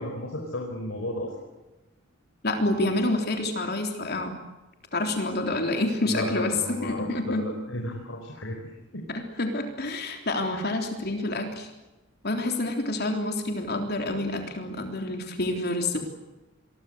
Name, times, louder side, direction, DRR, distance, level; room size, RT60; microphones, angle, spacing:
voice 1, 0.0-1.3 6.0-9.0 10.5-10.7, left 1 dB, 70° left, 0 dB, 4.9 m, -34 dB
voice 2, 2.4-4.3 4.9-7.5 9.1-11.7 12.2-16.0, left 2 dB, 55° left, 4 dB, 3.5 m, -28 dB
27.5 x 22.5 x 8.0 m, 1.1 s
head